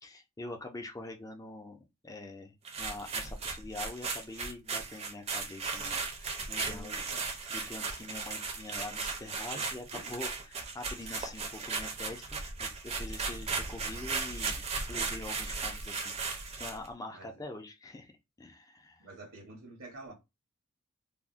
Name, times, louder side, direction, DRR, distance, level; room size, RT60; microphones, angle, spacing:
voice 1, 0.0-7.0 7.5-14.6 14.9-18.1 18.4-19.0, left 2 dB, 15° left, 0.4 m, -45 dB
sound 1, 2.6-16.9, right 4 dB, 30° right, 0.6 m, -36 dB
voice 2, 6.6-7.3 9.5-10.1 17.1-17.4 19.0-20.1, right 2 dB, 65° right, 0.9 m, -48 dB
3.4 x 2.1 x 2.5 m
head